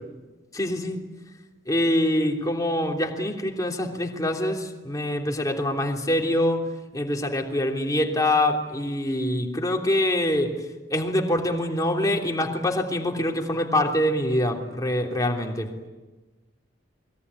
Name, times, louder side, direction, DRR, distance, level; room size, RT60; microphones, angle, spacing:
voice 1, 0.5-1.0 1.7-6.6 6.9-10.5 10.9-15.7, left 1 dB, 20° left, 1 dB, 3.2 m, -25 dB
28.0 x 22.0 x 9.7 m, 1.2 s
head